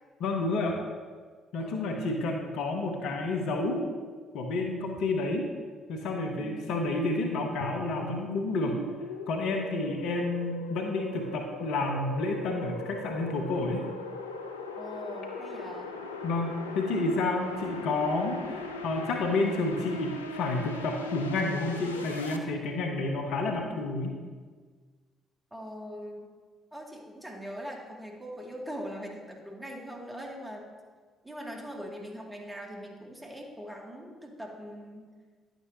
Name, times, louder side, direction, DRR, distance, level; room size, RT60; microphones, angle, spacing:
voice 1, 0.2-0.8 1.5-3.9 4.3-5.5 5.9-8.8 9.3-13.8 16.2-24.1, left 2 dB, 65° left, 3 dB, 1.0 m, -30 dB
voice 2, 1.6-2.0 6.3-6.8 9.7-10.1 14.8-16.0 25.5-26.3 26.7-30.7 31.2-35.1, equal, 10° right, -1 dB, 2.3 m, -42 dB
sound 1, 7.6-22.4, left 3 dB, 85° left, 0.5 m, -40 dB
10.5 x 9.1 x 2.8 m, 1.5 s
figure-of-eight pair, 45°, 0 cm